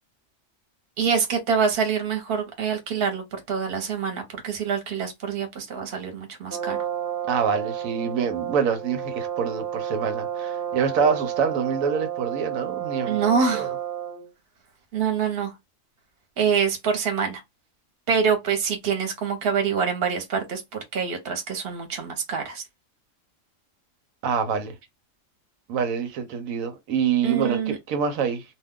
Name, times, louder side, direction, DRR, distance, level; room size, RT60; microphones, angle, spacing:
voice 1, 1.0-6.8 13.0-13.8 14.9-15.5 16.4-17.4 18.1-22.6 27.2-27.8, right 6 dB, 50° right, 1.0 m, -25 dB
Brass instrument, 6.5-14.3, right 10 dB, 25° right, 0.4 m, -31 dB
voice 2, 7.3-13.2 13.5-13.7 24.2-24.7 25.7-28.4, right 6 dB, 85° right, 1.1 m, -26 dB
2.4 x 2.2 x 3.5 m
omnidirectional pair, 1.4 m